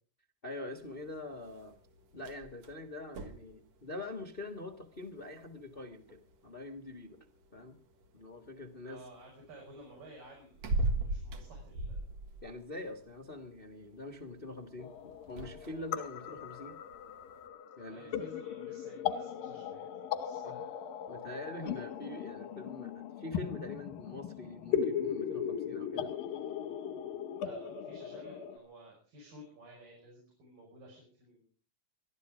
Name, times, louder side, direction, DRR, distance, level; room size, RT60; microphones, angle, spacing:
voice 1, 0.4-1.8 2.1-7.2 7.5-7.8 8.1-9.0 12.4-16.8 17.8-18.2 20.4-20.6 21.1-26.1, left 2 dB, 50° left, 4 dB, 0.6 m, -44 dB
sound 1, 0.8-17.5, right 2 dB, 55° right, 2.6 m, -42 dB
voice 2, 8.8-12.2 17.9-20.9 27.3-31.5, right 1 dB, 85° right, -2 dB, 7.1 m, -54 dB
sound 2, 14.8-28.6, left 8 dB, 90° left, 2.8 m, -38 dB
22.5 x 12.5 x 4.9 m, 0.40 s
omnidirectional pair, 3.8 m